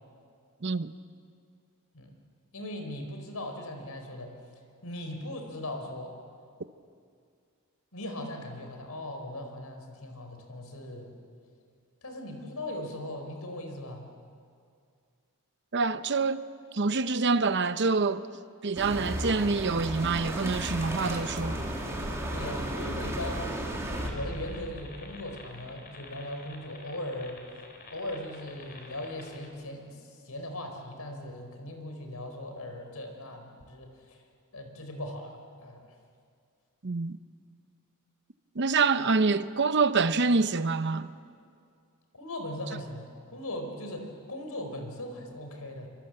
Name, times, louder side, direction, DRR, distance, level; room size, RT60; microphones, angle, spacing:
voice 1, 0.6-0.9 15.7-16.4 16.7-18.2 18.6-21.6 36.8-37.2 38.5-41.1, right 4 dB, 55° right, 0.9 m, -26 dB
voice 2, 2.5-4.3 4.8-6.2 7.9-11.2 12.0-14.1 22.3-23.5 24.1-27.5 27.9-34.2 34.5-35.3 35.6-35.8 42.1-45.9, left 1 dB, 90° left, 4.7 m, -39 dB
sound 1, 18.8-24.1, right 1 dB, 15° right, 3.2 m, -34 dB
sound 2, 24.0-29.5, left 1 dB, 45° left, 3.8 m, -45 dB
27.0 x 25.5 x 7.9 m
head